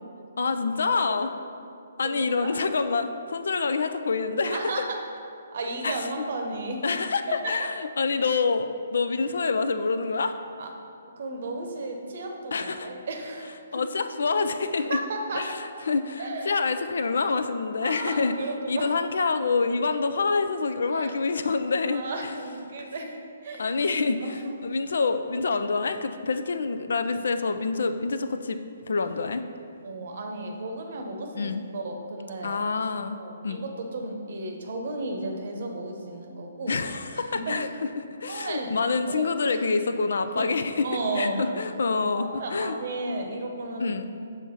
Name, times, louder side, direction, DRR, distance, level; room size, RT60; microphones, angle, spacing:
voice 1, 0.4-1.3 2.0-4.6 5.8-6.1 6.8-10.3 12.5-12.9 13.7-15.0 15.3-15.6 15.9-18.3 18.7-22.0 23.6-29.4 31.3-31.6 32.4-33.2 33.4-33.6 36.7-37.7 38.0-40.9 41.2-42.8 43.8-44.1, left 4 dB, 60° left, 9 dB, 0.4 m, -27 dB
voice 2, 2.0-2.5 4.4-5.0 5.5-6.8 7.3-7.7 10.6-10.7 11.2-13.8 14.9-15.6 16.2-16.6 17.8-19.0 20.9-21.2 21.9-23.2 23.4-23.7 24.2-24.5 29.8-32.6 33.2-36.8 37.1-37.6 38.3-38.7 39.1-39.7 40.3-40.5 40.8-41.5 42.2-43.9, right 2 dB, 50° right, 2 dB, 0.9 m, -34 dB
7.0 x 3.5 x 5.4 m, 2.4 s
figure-of-eight pair, 130°, 0 cm